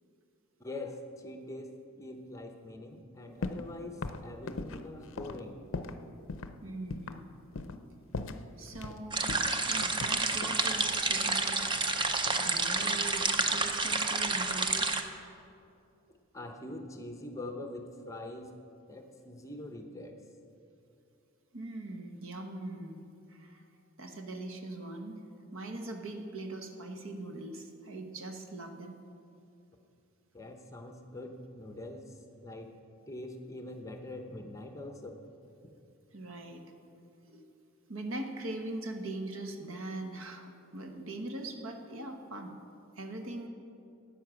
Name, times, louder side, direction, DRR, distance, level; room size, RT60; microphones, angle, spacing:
voice 1, 0.6-5.6 16.3-18.5 18.9-20.2 30.3-32.0 32.4-32.7 33.1-35.2, left 1 dB, 15° left, 5 dB, 0.7 m, -43 dB
sound 1, 3.4-3.7 4.0-6.0 6.3-6.5 6.9-7.2 7.6-7.8 8.1-9.0 9.3-10.6 11.6-12.5 12.8-13.2, left 3 dB, 60° left, 0.5 m, -39 dB
voice 2, 6.6-7.3 8.6-11.6 12.4-14.9 21.5-23.0 23.3-23.6 24.0-25.2 25.5-29.0 36.1-36.6 37.3-37.4 37.9-42.5 43.0-43.5, right 2 dB, 65° right, 4 dB, 1.1 m, -41 dB
sound 2, 9.1-15.0, right 3 dB, 20° right, 0.5 m, -29 dB
12.5 x 8.8 x 6.1 m, 2.6 s
head